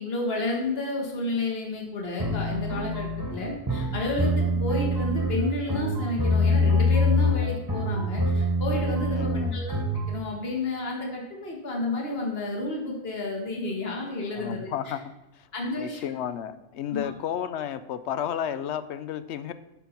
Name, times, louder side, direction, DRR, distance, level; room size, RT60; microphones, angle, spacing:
voice 1, 0.0-9.7 10.1-14.7 15.5-16.0, left 2 dB, 60° left, -1 dB, 1.8 m, -31 dB
sound 1, 2.2-10.1, left 1 dB, 20° right, 1.3 m, -25 dB
voice 2, 9.0-9.6 14.3-15.0 15.4-15.5 15.7-19.5, left 9 dB, 75° left, 13 dB, 0.9 m, -32 dB
11.5 x 5.4 x 4.4 m, 0.98 s
omnidirectional pair, 1.2 m